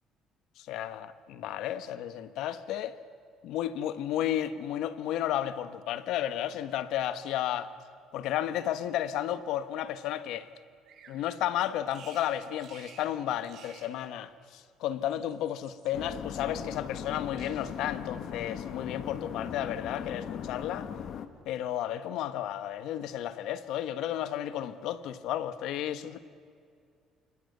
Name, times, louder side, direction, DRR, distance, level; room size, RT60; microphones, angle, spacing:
voice 1, 0.6-3.0 3.4-7.7 8.1-10.5 11.1-20.9 21.4-26.2, left 11 dB, 75° left, 1.4 m, -33 dB
Bird vocalization bird call bird song, 10.8-11.2 11.9-12.3 12.6-13.1 13.4-13.9 14.9-15.9 16.7-17.1 17.4-17.9 18.3-18.7, right 6 dB, 55° right, 6.7 m, -54 dB
sound 1, 15.9-21.3, left 8 dB, 50° left, 1.5 m, -39 dB
29.0 x 25.5 x 6.8 m
cardioid pair, 140°, 0 cm